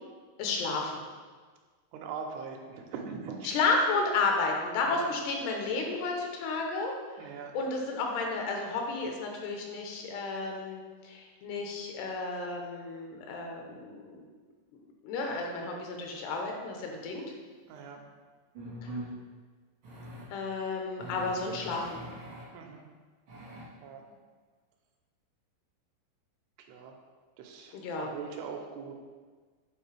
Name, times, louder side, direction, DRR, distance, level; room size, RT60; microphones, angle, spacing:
voice 1, 0.4-1.0 3.4-6.9 7.5-14.3 15.0-17.2 18.8-18.9 20.3-22.0 27.7-28.1, left 3 dB, 85° left, 1 dB, 2.9 m, -32 dB
voice 2, 1.9-3.6 4.8-5.1 7.2-7.6 17.7-18.0 22.5-22.9 23.8-24.2 26.6-26.9 27.4-29.0, right 5 dB, 85° right, 2 dB, 2.7 m, -42 dB
sound 1, 17.8-17.9 18.5-19.1 19.8-20.3 21.0-22.5 23.3-23.7, right 1 dB, 65° right, 1.2 m, -42 dB
8.2 x 4.0 x 3.2 m, 1.5 s
omnidirectional pair, 4.7 m